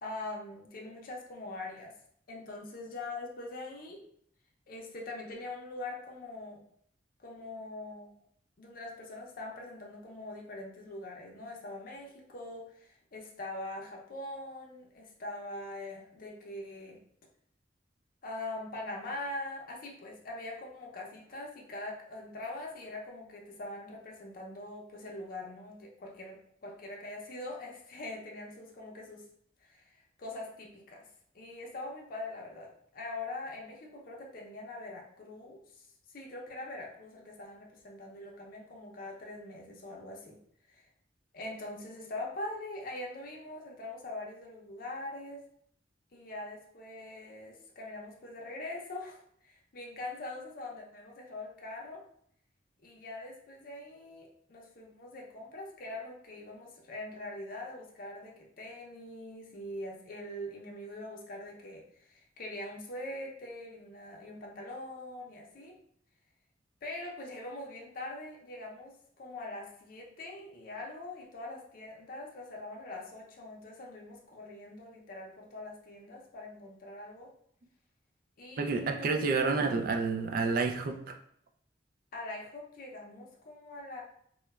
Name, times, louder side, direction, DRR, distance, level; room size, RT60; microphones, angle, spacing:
voice 1, 0.0-1.9 2.3-4.0 4.7-6.6 7.2-8.1 8.6-17.0 18.2-29.2 29.6-31.1 31.3-40.4 40.7-40.9 41.3-45.4 46.1-52.0 52.8-65.7 66.8-77.3 78.4-79.1 82.1-84.0, left 2 dB, 55° left, -1 dB, 0.5 m, -43 dB
voice 2, 78.6-81.2, right 4 dB, 55° right, 4 dB, 0.3 m, -29 dB
3.0 x 2.1 x 2.2 m, 0.67 s
head